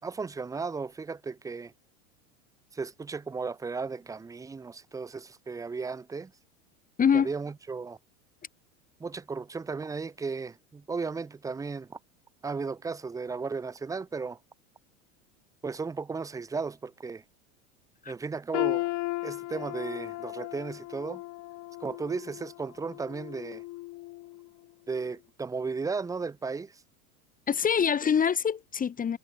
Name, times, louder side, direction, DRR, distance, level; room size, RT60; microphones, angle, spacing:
voice 1, 0.0-1.7 2.7-6.3 7.1-8.0 9.0-12.0 12.4-14.4 15.6-17.2 18.1-18.9 19.2-21.2 21.8-23.6 24.9-26.8, right 4 dB, 10° right, 0.5 m, -35 dB
voice 2, 7.0-7.3 18.0-18.1 27.5-29.2, left 7 dB, 20° left, 1.0 m, -25 dB
sound 1, 18.5-24.5 24.9-25.1 25.9-26.0, left 19 dB, 45° left, 1.6 m, -36 dB
hypercardioid pair, 90°, 40 cm